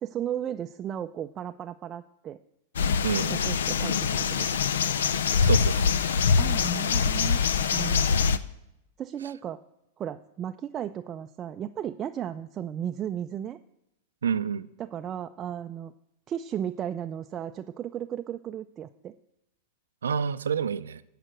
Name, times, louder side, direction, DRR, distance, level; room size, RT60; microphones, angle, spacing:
voice 1, 0.0-2.4 3.3-4.6 6.4-7.4 7.7-8.2 9.0-9.6 10.0-13.6 14.8-15.9 16.3-19.1, right 10 dB, 30° right, 0.4 m, -35 dB
sound 1, 2.8-8.4, left 6 dB, 80° left, 0.5 m, -24 dB
voice 2, 3.0-3.4 5.4-6.0 14.2-14.7 20.0-21.0, right 7 dB, 90° right, 0.5 m, -28 dB
13.5 x 5.0 x 7.8 m
hypercardioid pair, 115°, 0 cm